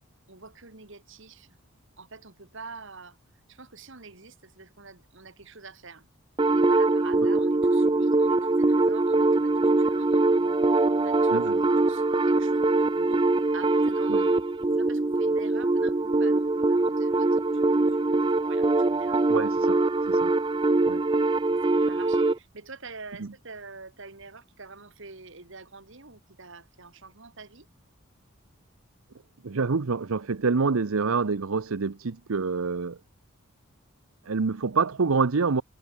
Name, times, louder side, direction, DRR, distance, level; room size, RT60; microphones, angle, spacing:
voice 1, 0.3-1.6 2.0-3.2 3.5-6.1 6.4-17.4 17.9-19.2 21.5-27.7, right 4 dB, 60° right, 2.2 m, -46 dB
sound 1, 6.4-22.4, right 2 dB, 20° right, 0.4 m, -23 dB
voice 2, 19.3-19.8 20.1-20.3 20.9-21.0 23.2-23.3 29.4-33.0 34.3-35.6, right 4 dB, 80° right, 0.7 m, -26 dB
head